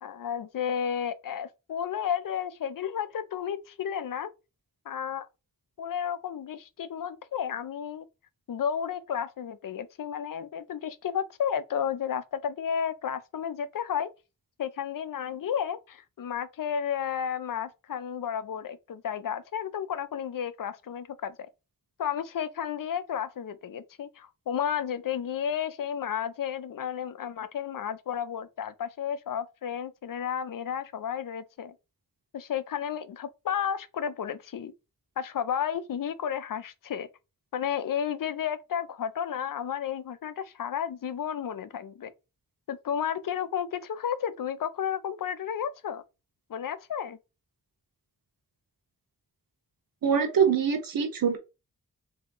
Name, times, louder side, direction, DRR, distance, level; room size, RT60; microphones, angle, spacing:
voice 1, 0.0-4.3 4.9-5.3 5.8-8.1 8.5-14.1 14.6-21.5 22.0-31.7 32.3-34.7 35.2-37.1 37.5-42.1 42.7-46.0 46.5-47.2, left 8 dB, 75° left, 0.6 m, -32 dB
voice 2, 50.0-51.4, right 7 dB, 80° right, 1.0 m, -24 dB
3.6 x 2.8 x 3.7 m
wide cardioid pair, 105°, 33 cm